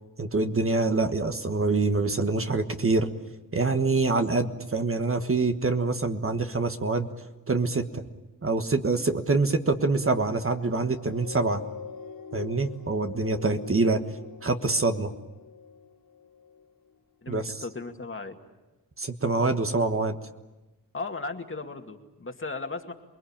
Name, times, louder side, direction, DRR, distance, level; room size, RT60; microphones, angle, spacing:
voice 1, 0.2-3.1 3.5-7.1 7.5-8.0 8.4-11.6 12.3-14.0 14.4-15.1 17.3-17.6 19.0-20.2, right 3 dB, 40° right, 6 dB, 1.5 m, -25 dB
sound 1, 10.3-17.0 17.6-17.7, left 6 dB, 90° left, 4.4 m, -44 dB
voice 2, 17.2-18.4 20.9-22.9, left 3 dB, 35° left, 4 dB, 2.2 m, -36 dB
28.0 x 21.0 x 8.8 m, 1.1 s
wide cardioid pair, 80°, 35 cm